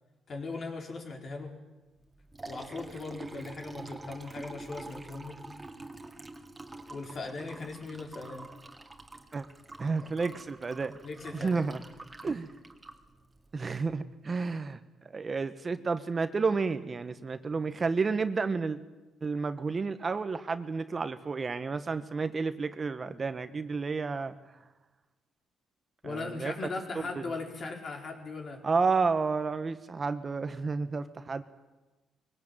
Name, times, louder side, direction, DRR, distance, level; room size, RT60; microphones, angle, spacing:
voice 1, 0.3-1.5 2.5-5.4 6.9-8.5 11.0-11.8 12.2-12.3 26.0-28.6, left 3 dB, 50° left, 3 dB, 4.5 m, -39 dB
Liquid, 2.0-13.9, right 2 dB, 15° right, 2.2 m, -47 dB
voice 2, 9.8-11.0 11.3-11.8 12.2-12.5 13.5-14.8 15.1-18.8 19.2-24.4 26.0-26.5 28.6-31.4, right 4 dB, 35° right, 11 dB, 1.2 m, -31 dB
21.5 x 18.0 x 9.1 m, 1.1 s
cardioid pair, 90°, 0 cm